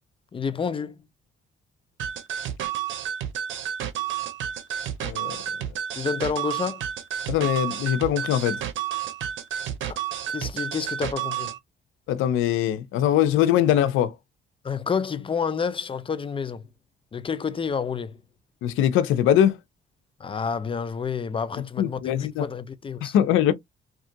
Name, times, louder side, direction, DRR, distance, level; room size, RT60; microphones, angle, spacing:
voice 1, 0.3-1.0 5.9-6.8 9.8-10.0 10.3-11.5 14.6-16.6 17.1-18.2 20.2-23.1, left 6 dB, 25° left, 0.5 m, -29 dB
sound 1, 2.0-11.6, right 10 dB, 75° right, 0.6 m, -31 dB
voice 2, 5.0-5.4 7.3-8.6 12.1-14.1 18.6-19.6 21.8-22.5 23.0-23.5, left 11 dB, 90° left, 0.5 m, -22 dB
2.8 x 2.3 x 2.6 m
cardioid pair, 90°, 20 cm